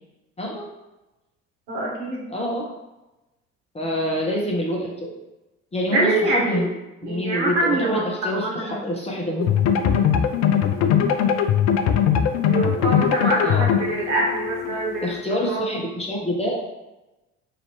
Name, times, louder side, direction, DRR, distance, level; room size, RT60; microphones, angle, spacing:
voice 1, 1.7-2.3 5.9-6.7 7.0-8.9 12.5-15.7, right 2 dB, 70° right, -4 dB, 1.2 m, -25 dB
voice 2, 2.3-2.6 3.7-5.2 5.7-6.6 7.0-9.5 9.7-9.9 13.4-13.7 15.0-16.6, equal, 15° left, -2 dB, 1.0 m, -26 dB
sound 1, 9.4-15.2, left 8 dB, 45° left, 0.4 m, -21 dB
2.9 x 2.8 x 4.4 m, 1.0 s
figure-of-eight pair, 50°, 37 cm